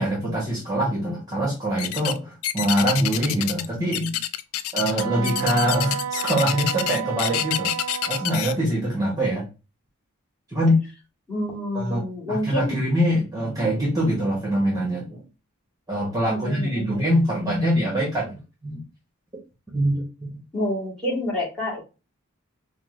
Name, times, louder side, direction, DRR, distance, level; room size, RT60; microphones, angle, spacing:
voice 1, 0.0-4.2 4.7-7.8 8.1-9.5 10.5-10.8 11.7-15.3 15.9-18.3 18.6-18.8 19.7-20.4, equal, 15° right, -4 dB, 0.9 m, -24 dB
sound 1, 1.8-2.2 2.4-3.7 3.9-8.5, left 12 dB, 80° left, 0.3 m, -27 dB
Wind instrument woodwind instrument, 5.0-8.4, right 8 dB, 85° right, 0.4 m, -31 dB
voice 2, 11.3-12.8 16.3-16.9 20.5-21.8, left 1 dB, 5° left, -3 dB, 1.5 m, -28 dB
4.7 x 2.0 x 2.4 m, 0.30 s
head